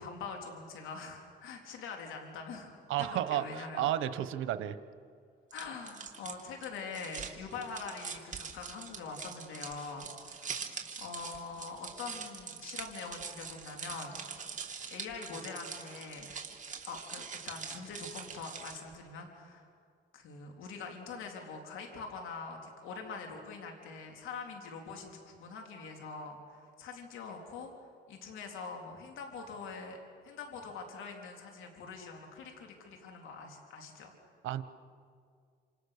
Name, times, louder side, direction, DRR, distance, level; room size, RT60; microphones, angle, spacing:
voice 1, 0.0-2.7 3.0-3.9 5.5-10.6 11.0-14.2 14.9-16.3 16.9-19.7 20.1-30.0 30.2-34.1, left 4 dB, 90° left, 2 dB, 3.7 m, -44 dB
voice 2, 2.9-4.8 34.4-34.6, right 12 dB, 90° right, 12 dB, 1.2 m, -32 dB
sound 1, 5.5-18.9, right 6 dB, 40° right, 2.9 m, -44 dB
28.0 x 27.5 x 6.7 m, 2.2 s
cardioid pair, 90°, 20 cm